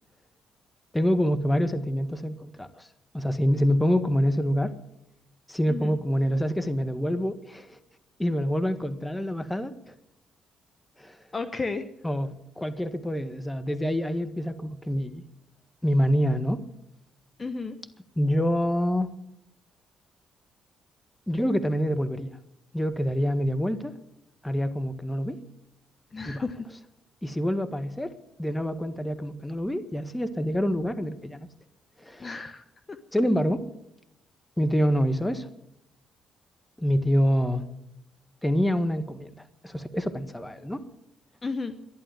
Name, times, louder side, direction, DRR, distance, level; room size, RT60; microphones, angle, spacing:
voice 1, 0.9-2.9 3.1-4.7 5.5-7.8 8.2-10.0 11.0-11.2 12.0-12.3 12.6-15.2 15.8-16.6 18.2-19.1 21.3-22.3 22.7-23.9 24.4-25.4 26.3-26.4 27.2-28.1 28.4-31.5 32.0-32.4 33.1-33.6 34.6-35.5 36.8-37.6 38.4-40.9, equal, 10° left, 9 dB, 1.7 m, -26 dB
voice 2, 11.3-11.8 17.4-17.8 26.1-26.6 32.2-33.0 41.4-41.7, left 4 dB, 35° left, 10 dB, 1.1 m, -33 dB
12.0 x 11.0 x 9.6 m, 0.84 s
hypercardioid pair, 50°, 0 cm